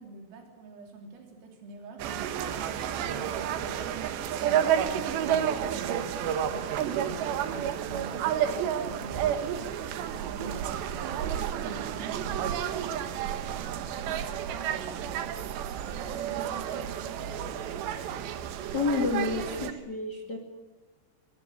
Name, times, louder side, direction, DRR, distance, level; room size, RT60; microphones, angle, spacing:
voice 1, 0.0-10.1 10.3-11.1 11.5-17.6, right 3 dB, 90° right, 3 dB, 5.8 m, -46 dB
sound 1, 2.0-19.7, right 9 dB, 70° right, 3.2 m, -31 dB
voice 2, 18.4-20.4, left 4 dB, 30° left, 4 dB, 1.9 m, -30 dB
25.0 x 21.5 x 7.2 m, 1.2 s
omnidirectional pair, 5.8 m